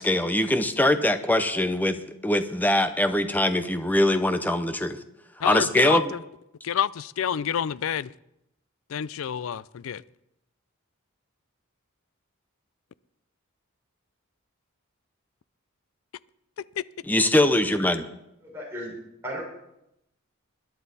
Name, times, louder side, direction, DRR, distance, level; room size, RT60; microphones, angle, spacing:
voice 1, 0.0-5.0 5.4-6.0 17.1-18.0, left 1 dB, 10° left, 0.7 m, -22 dB
voice 2, 5.4-6.2 6.6-8.1 8.9-10.0 16.8-16.9, left 8 dB, 70° left, 0.4 m, -28 dB
voice 3, 18.4-18.9 19.2-19.4, equal, 10° right, 5.0 m, -35 dB
20.5 x 10.5 x 4.1 m
head